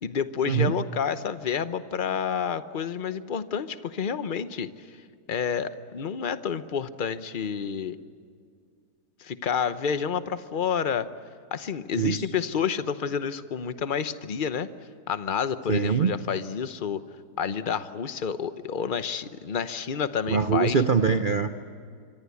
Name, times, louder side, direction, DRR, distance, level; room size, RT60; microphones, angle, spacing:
voice 1, 0.0-4.7 5.3-8.0 9.2-11.1 11.5-14.7 15.1-17.0 17.4-20.8, left 7 dB, 40° left, 12 dB, 0.9 m, -29 dB
voice 2, 15.7-16.1 20.3-21.6, right 6 dB, 40° right, 8 dB, 0.7 m, -23 dB
27.0 x 24.5 x 8.4 m, 2.2 s
omnidirectional pair, 1.7 m